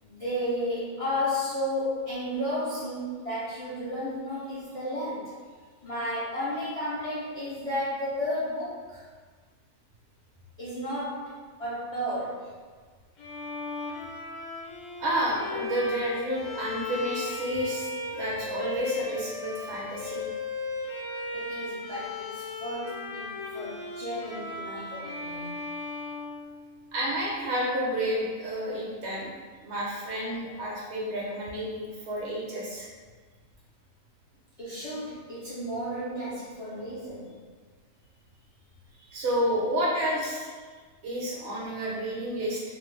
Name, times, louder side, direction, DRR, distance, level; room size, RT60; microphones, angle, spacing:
voice 1, 0.0-5.4 5.8-9.0 10.6-12.5 21.3-25.5 34.6-37.3, left 1 dB, 55° left, -10 dB, 0.4 m, -33 dB
Bowed string instrument, 13.2-27.1, left 3 dB, 75° left, 0.9 m, -36 dB
voice 2, 15.0-20.3 26.9-29.3 29.6-32.9 39.0-40.5 41.0-42.6, equal, 65° right, -4 dB, 0.8 m, -30 dB
2.4 x 2.1 x 3.1 m, 1.5 s
omnidirectional pair, 1.4 m